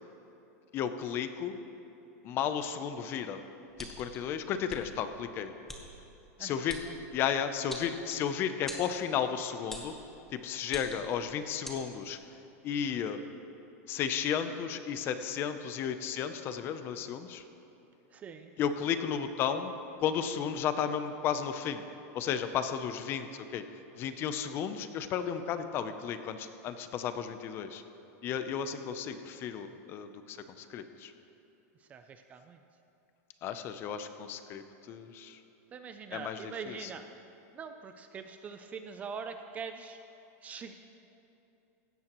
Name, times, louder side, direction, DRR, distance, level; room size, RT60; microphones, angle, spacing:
voice 1, 0.7-1.6 2.2-3.4 3.8-5.5 6.4-6.8 7.1-9.9 10.3-12.2 12.6-13.2 13.9-17.4 18.6-19.7 20.0-21.8 22.1-23.6 24.0-27.8 28.2-31.1 33.4-35.4 36.1-36.9, left 8 dB, 25° left, 10 dB, 0.6 m, -33 dB
sound 1, 3.8-4.2 4.7-4.8 5.7-5.8 6.7-6.9 7.7-8.3 8.7-8.9 9.7-10.0 10.7-11.1 11.6-11.8, left 1 dB, 5° left, 1.0 m, -43 dB
voice 2, 6.4-6.9 18.1-18.5 31.8-32.6 35.7-37.0 37.5-40.0 40.4-40.7, right 6 dB, 15° right, 8 dB, 0.4 m, -43 dB
16.0 x 13.5 x 3.0 m, 2.9 s
supercardioid pair, 165°, 9 cm